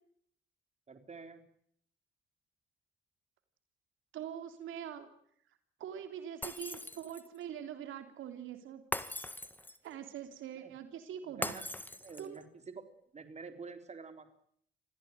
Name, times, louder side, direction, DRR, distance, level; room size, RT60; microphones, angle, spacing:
voice 1, 0.9-1.4 10.6-10.7 11.2-11.6 12.0-12.8 13.1-14.3, right 4 dB, 35° right, 7 dB, 4.0 m, -48 dB
voice 2, 4.1-5.1 5.8-8.8 9.8-11.6 12.2-12.4, right 9 dB, 80° right, 7 dB, 3.3 m, -43 dB
Shatter, 6.4-7.4 8.9-9.9 11.4-12.4, left 1 dB, 10° left, 1.8 m, -40 dB
26.0 x 16.0 x 9.5 m, 0.67 s
cardioid pair, 90°, 20 cm